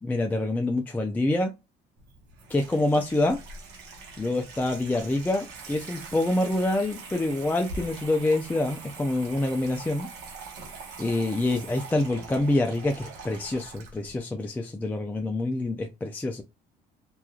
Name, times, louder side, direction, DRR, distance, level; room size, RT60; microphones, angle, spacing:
voice 1, 0.0-1.5 2.5-3.4 4.2-10.1 11.0-16.4, left 2 dB, 10° left, 3 dB, 0.3 m, -26 dB
Water tap faucet / Sink (filling or washing), 2.0-14.2, right 4 dB, 90° right, 0.9 m, -43 dB
3.0 x 2.3 x 2.3 m, 0.24 s
cardioid pair, 110°, 17 cm